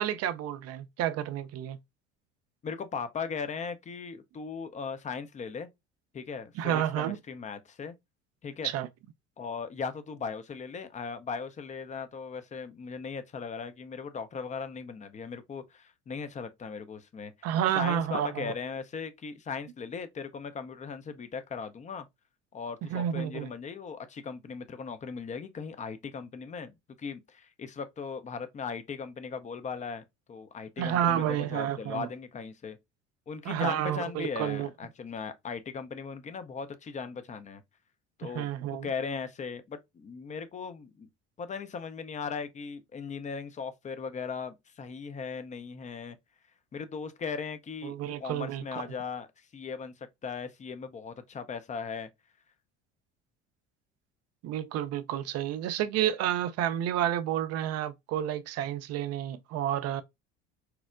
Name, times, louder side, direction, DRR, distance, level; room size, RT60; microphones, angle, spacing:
voice 1, 0.0-1.8 6.6-7.2 8.6-8.9 17.4-18.5 22.9-23.5 30.8-32.1 33.5-34.7 38.2-38.9 47.8-48.6 54.4-60.0, right 10 dB, 45° right, 0.5 m, -30 dB
voice 2, 2.6-5.7 6.1-7.9 8.4-8.7 9.4-17.5 17.7-22.1 22.5-32.8 33.3-37.6 38.2-41.1 41.4-46.2 46.7-52.1, left 5 dB, 20° left, 0.5 m, -38 dB
4.3 x 2.0 x 2.4 m
hypercardioid pair, 65°, 35 cm